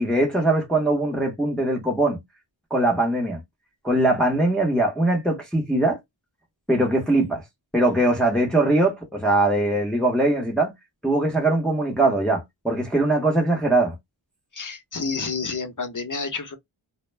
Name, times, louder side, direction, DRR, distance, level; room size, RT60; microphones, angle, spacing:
voice 1, 0.0-2.2 2.7-3.4 3.8-6.0 6.7-7.4 7.7-10.7 11.0-13.9, right 2 dB, ahead, 0.8 m, -21 dB
voice 2, 14.5-16.6, left 4 dB, 40° left, 0.7 m, -29 dB
2.2 x 2.1 x 3.2 m
wide cardioid pair, 40°, 49 cm